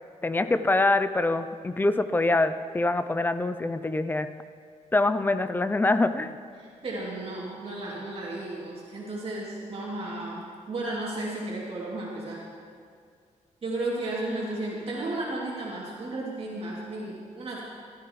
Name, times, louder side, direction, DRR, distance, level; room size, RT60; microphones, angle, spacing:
voice 1, 0.2-4.3 4.9-6.4, left 2 dB, 15° left, 11 dB, 0.5 m, -24 dB
voice 2, 6.6-12.4 13.6-17.6, right 2 dB, 50° right, -5 dB, 2.8 m, -34 dB
17.0 x 13.5 x 3.2 m, 2.2 s
wide cardioid pair, 125°, 12 cm